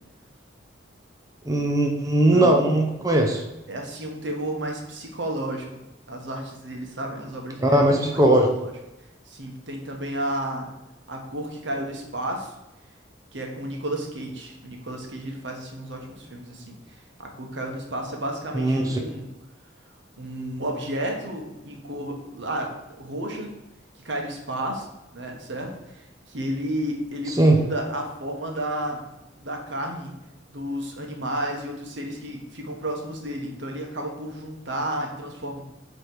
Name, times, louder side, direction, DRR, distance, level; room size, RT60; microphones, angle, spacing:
voice 1, 1.5-3.4 7.6-8.5 18.5-19.0 27.4-27.6, right 1 dB, 20° right, 1 dB, 0.7 m, -19 dB
voice 2, 2.3-2.8 3.7-5.7 6.1-7.8 8.5-8.7 9.3-10.7 11.1-12.5 13.3-16.7 17.2-19.3 20.2-22.7 23.0-23.5 24.0-24.9 25.1-29.0 29.4-30.1 30.5-35.6, right 1 dB, 75° right, 2 dB, 1.4 m, -32 dB
8.1 x 3.4 x 4.6 m, 0.98 s
head